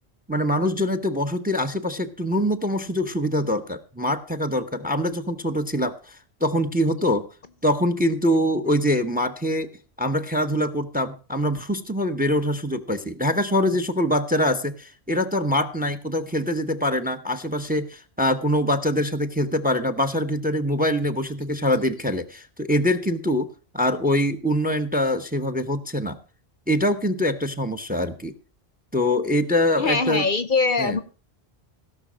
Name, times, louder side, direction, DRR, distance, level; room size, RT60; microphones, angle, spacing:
voice 1, 0.3-7.3 7.6-9.7 10.0-23.5 23.7-26.2 26.7-28.3 28.9-30.3 30.8-31.0, left 1 dB, 10° right, 11 dB, 0.8 m, -24 dB
voice 2, 29.8-31.0, left 4 dB, 55° left, 14 dB, 0.9 m, -22 dB
16.5 x 6.2 x 6.1 m, 0.36 s
omnidirectional pair, 1.1 m